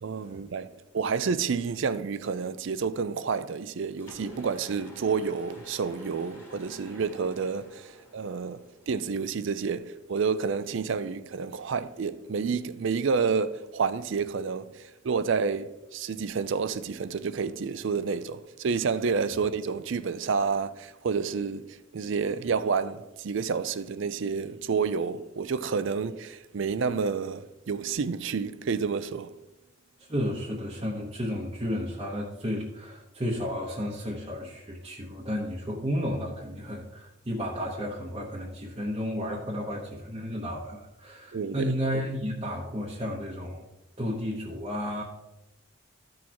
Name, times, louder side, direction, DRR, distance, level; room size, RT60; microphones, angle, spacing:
voice 1, 0.0-29.3 41.3-41.7, right 5 dB, 60° right, 0.4 m, -29 dB
Mechanisms, 4.0-9.1, equal, 10° left, 1.7 m, -49 dB
voice 2, 30.0-43.6 44.0-45.0, equal, 25° right, 1.0 m, -32 dB
14.0 x 6.2 x 2.9 m
head